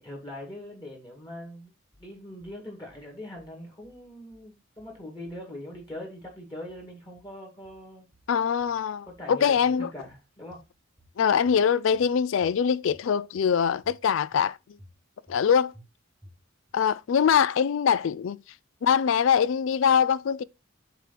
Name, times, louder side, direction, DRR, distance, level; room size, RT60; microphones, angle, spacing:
voice 1, 0.0-1.7 2.0-8.1 9.1-10.6, left 1 dB, 20° left, 2.2 m, -42 dB
minimal-fullrange, 1.9-2.5 2.9-3.5 3.8-4.5 4.8-5.5 5.7-6.4 6.7-7.4 7.6-8.3 8.6-9.3 9.5-10.2 10.5-11.2 11.5-12.1 12.4-13.1 13.4-14.0 14.3-14.4 14.8-15.4 15.7-15.9 16.2-16.7, equal, 10° right, 1.2 m, -56 dB
voice 2, 8.3-9.9 11.2-14.6 15.3-15.7 16.7-18.4 18.8-20.4, left 7 dB, 65° left, 0.3 m, -23 dB
8.1 x 3.0 x 5.8 m
head